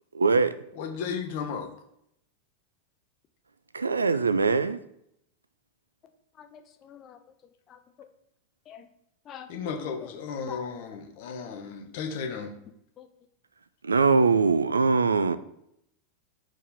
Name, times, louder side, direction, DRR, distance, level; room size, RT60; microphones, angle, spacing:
voice 1, 0.1-0.5 3.7-4.8 13.8-15.4, right 4 dB, 85° right, 0.4 m, -22 dB
voice 2, 0.7-1.7 9.5-12.5, left 6 dB, 55° left, 1.2 m, -34 dB
voice 3, 6.4-7.2 7.7-8.1 8.7-8.8 9.3-9.5 9.8-9.9 10.5-10.7 13.0-13.1, left 9 dB, 35° left, 0.9 m, -45 dB
4.7 x 4.6 x 5.2 m
figure-of-eight pair, 90°, 0 cm